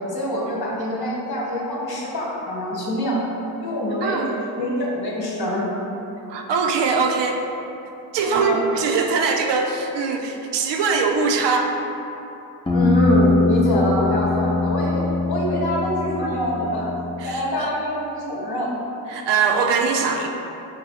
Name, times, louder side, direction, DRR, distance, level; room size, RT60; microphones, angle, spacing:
voice 1, 0.0-3.2 3.6-4.2 4.6-5.7 8.2-8.6 12.7-15.0 15.3-16.9 17.2-18.7, equal, 50° left, -4 dB, 1.3 m, -24 dB
voice 2, 4.0-4.4 6.3-7.4 8.1-11.8 17.2-17.7 19.1-20.3, right 5 dB, 65° right, 2 dB, 0.6 m, -22 dB
sound 1, 12.7-17.3, left 3 dB, 10° left, 0.7 m, -22 dB
4.8 x 2.2 x 4.0 m, 2.9 s
supercardioid pair, 50°, 47 cm